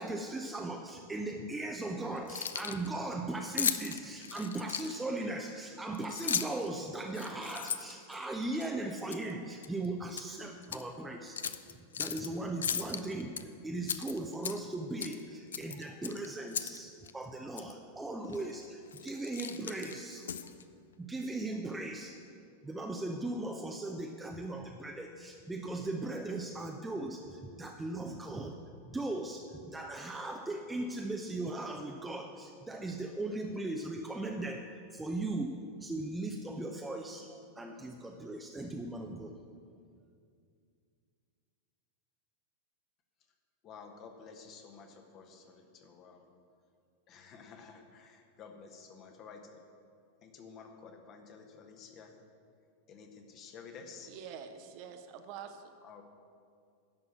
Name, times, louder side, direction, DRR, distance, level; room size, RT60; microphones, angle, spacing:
voice 1, 0.0-11.4 12.0-20.3 21.0-22.2 22.6-28.5 28.8-34.6 34.9-35.5 35.8-39.3, right 2 dB, 10° right, 2 dB, 0.6 m, -38 dB
Keys jangling, 2.2-2.9 3.6-5.2 5.9-6.7 7.1-8.7 9.1-9.3 9.6-10.3 10.6-10.8 11.4-12.3 12.6-13.4 13.8-14.7 15.0-15.2 15.5-16.8 17.1-17.2 17.6-17.7 18.3-18.5 18.9-20.6, left 7 dB, 65° left, 0.4 m, -36 dB
voice 2, 43.6-46.3 47.1-49.6 50.2-52.2 52.9-54.1 55.8-56.0, left 5 dB, 35° left, 4 dB, 1.2 m, -52 dB
voice 3, 53.9-55.7, right 7 dB, 45° right, 7 dB, 0.8 m, -46 dB
11.0 x 6.2 x 7.4 m, 2.3 s
figure-of-eight pair, 90°, 0 cm